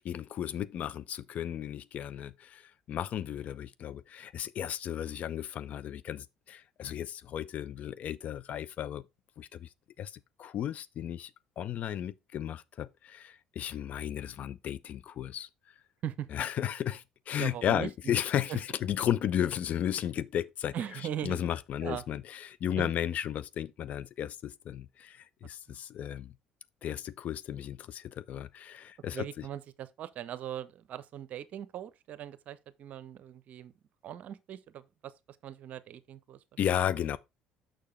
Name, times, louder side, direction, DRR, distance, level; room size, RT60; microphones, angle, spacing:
voice 1, 0.0-9.0 9.4-9.7 10.0-11.3 11.6-15.5 16.3-26.3 26.8-29.5 36.6-37.2, left 10 dB, 50° left, 0.5 m, -34 dB
voice 2, 17.4-17.9 18.5-18.6 20.7-21.4 21.8-22.0 22.7-22.9 25.7-25.8 29.1-33.7 34.0-35.1 35.4-36.4, right 10 dB, 55° right, 0.7 m, -40 dB
6.5 x 6.3 x 3.3 m
hypercardioid pair, 55°, 3 cm